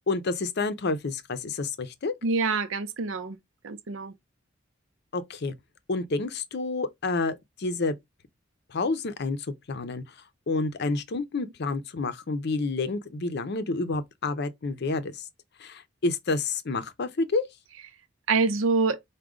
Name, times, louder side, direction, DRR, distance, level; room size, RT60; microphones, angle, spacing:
voice 1, 0.0-2.1 5.1-5.5 5.9-8.0 8.7-9.4 9.7-10.0 10.5-15.2 15.6-17.4, left 3 dB, 55° left, 0.6 m, -29 dB
voice 2, 2.2-3.4 3.6-4.1 18.3-19.0, right 4 dB, 85° right, 0.7 m, -25 dB
4.9 x 2.2 x 3.6 m
head